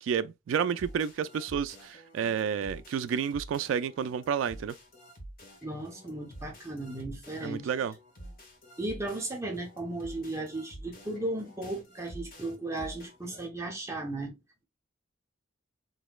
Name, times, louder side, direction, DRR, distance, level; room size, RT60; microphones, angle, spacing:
voice 1, 0.0-4.7 7.4-7.9, right 7 dB, 90° right, 0.3 m, -30 dB
sound 1, 0.5-13.5, right 1 dB, 50° left, 1.9 m, -49 dB
voice 2, 5.6-7.7 8.8-14.4, right 2 dB, 15° right, 0.9 m, -36 dB
3.9 x 3.0 x 2.3 m
head